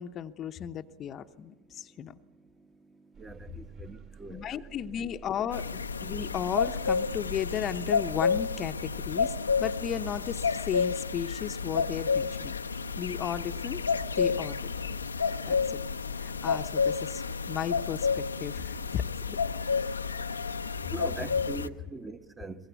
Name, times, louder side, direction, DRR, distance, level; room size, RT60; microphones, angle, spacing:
voice 1, 0.0-2.2 4.3-12.5 13.0-13.8 14.1-14.6 14.9-15.0 15.5-15.8 16.2-19.4 21.2-21.3, left 9 dB, 35° left, 0.8 m, -35 dB
sound 1, 3.1-9.7, right 7 dB, 45° right, 4.5 m, -51 dB
voice 2, 3.2-4.8 20.9-22.7, right 2 dB, 15° right, 1.2 m, -41 dB
sound 2, 5.5-21.7, left 5 dB, 90° left, 0.7 m, -30 dB
22.5 x 21.5 x 8.2 m
hypercardioid pair, 85°, 0 cm